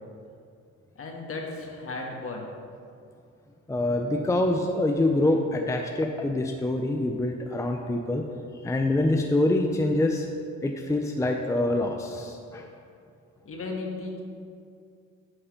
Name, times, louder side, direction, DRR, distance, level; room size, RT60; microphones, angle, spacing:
voice 1, 0.9-2.5 13.4-14.2, left 3 dB, 45° left, 0 dB, 1.5 m, -35 dB
voice 2, 3.7-8.2 8.5-10.3 10.6-12.7, left 1 dB, 10° left, 2 dB, 0.5 m, -25 dB
8.8 x 4.7 x 5.1 m, 2.4 s
cardioid pair, 90°, 30 cm